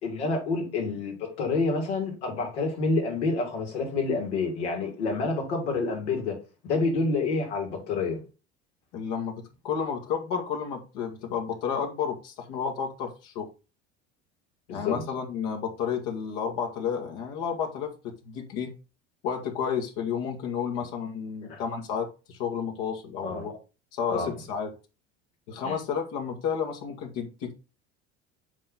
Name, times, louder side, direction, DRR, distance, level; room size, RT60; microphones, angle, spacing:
voice 1, 0.0-6.4 6.6-8.2 14.7-15.0 21.4-21.6 23.2-23.5 24.1-24.3 25.6-25.8, left 3 dB, 80° left, 3.0 m, -28 dB
voice 2, 8.9-13.5 14.7-18.7 19.2-23.5 23.9-24.7 25.5-27.5, left 7 dB, 65° left, 1.9 m, -31 dB
7.2 x 4.5 x 3.9 m
hypercardioid pair, 75°, 34 cm